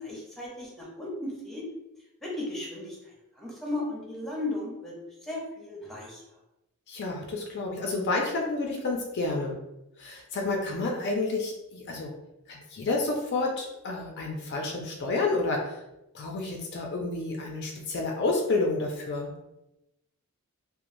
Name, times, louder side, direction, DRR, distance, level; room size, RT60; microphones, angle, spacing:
voice 1, 0.0-1.6 2.2-3.0 3.4-5.0 5.3-6.2, left 2 dB, ahead, -4 dB, 0.6 m, -35 dB
voice 2, 6.9-9.6 10.0-12.1 12.5-15.8 16.1-19.3, left 3 dB, 50° left, 1 dB, 0.4 m, -30 dB
3.0 x 2.0 x 2.5 m, 0.90 s
head